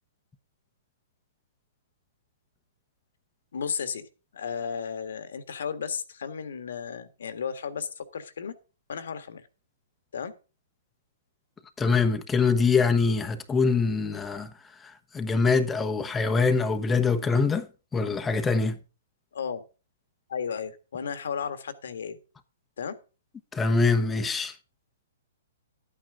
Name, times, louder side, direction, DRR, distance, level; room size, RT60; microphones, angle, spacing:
voice 1, 3.5-8.6 8.9-9.5 10.1-10.3 19.3-19.6 20.3-22.2 22.8-23.0, left 6 dB, 70° left, 1.6 m, -34 dB
voice 2, 11.8-14.5 14.8-17.7 17.9-18.8 23.5-24.5, left 4 dB, 10° left, 1.1 m, -24 dB
12.0 x 9.0 x 3.8 m
hypercardioid pair, 125°, 0 cm